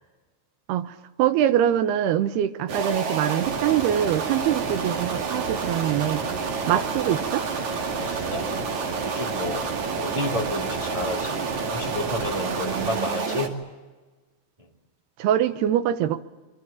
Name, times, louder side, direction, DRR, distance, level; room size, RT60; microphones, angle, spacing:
voice 1, 1.2-6.2 6.7-7.5 12.6-13.4 15.2-16.2, right 11 dB, 80° right, 10 dB, 3.0 m, -24 dB
sound 1, 2.7-13.5, right 5 dB, 50° right, 3.4 m, -29 dB
voice 2, 4.5-4.8 8.0-13.6, left 1 dB, 25° right, 0 dB, 0.7 m, -32 dB
28.0 x 23.5 x 7.1 m, 1.3 s
omnidirectional pair, 4.6 m